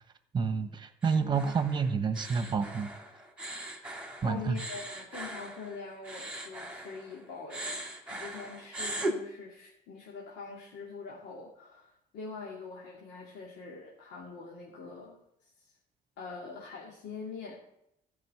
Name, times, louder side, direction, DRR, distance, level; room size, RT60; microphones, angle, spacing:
voice 1, 0.3-2.9 4.2-4.6, right 5 dB, 25° right, 10 dB, 1.2 m, -29 dB
sound 1, 1.0-7.2 7.5-9.1, right 1 dB, 5° right, 2.3 m, -39 dB
voice 2, 1.1-1.5 4.2-7.8 8.1-15.7 16.2-17.6, left 4 dB, 85° left, -3 dB, 2.4 m, -44 dB
14.5 x 5.5 x 7.9 m, 0.80 s
cardioid pair, 110°, 17 cm